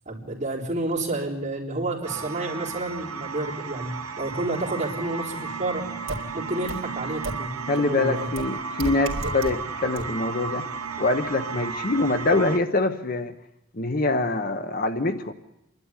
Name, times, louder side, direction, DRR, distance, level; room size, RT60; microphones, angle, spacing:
voice 1, 0.1-5.9 6.3-8.3, right 2 dB, 35° right, -3 dB, 3.9 m, -30 dB
sound 1, 2.0-12.6, right 5 dB, 85° right, 1.1 m, -34 dB
sound 2, 6.1-6.2 6.7-6.8 7.2-7.3 8.4-8.5 8.8-9.5 10.0-10.1, right 2 dB, 70° right, 2.6 m, -29 dB
voice 2, 7.7-10.7 11.0-13.3 13.7-15.3, left 2 dB, 40° left, 9 dB, 0.9 m, -24 dB
28.0 x 12.0 x 9.7 m, 0.91 s
head